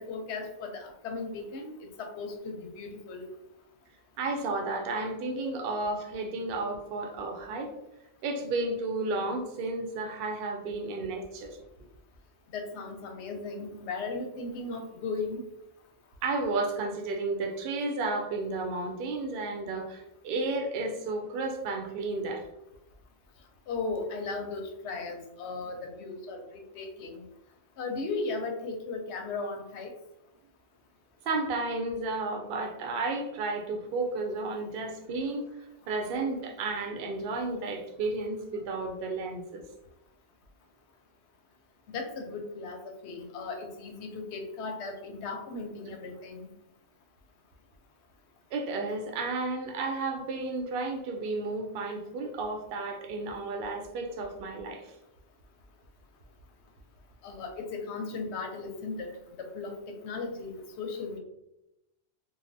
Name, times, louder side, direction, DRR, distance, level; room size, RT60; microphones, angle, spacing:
voice 1, 0.0-1.7 2.0-3.3 12.5-15.4 23.7-27.2 27.8-29.9 41.9-46.4 57.2-59.1 59.4-59.7 60.0-61.2, left 3 dB, 90° left, 4 dB, 0.9 m, -36 dB
voice 2, 4.2-7.7 8.2-11.6 16.2-22.4 31.3-35.5 35.9-39.6 45.9-46.0 48.5-54.9, right 3 dB, 65° right, 3 dB, 0.7 m, -32 dB
3.2 x 2.1 x 2.5 m, 0.88 s
omnidirectional pair, 1.1 m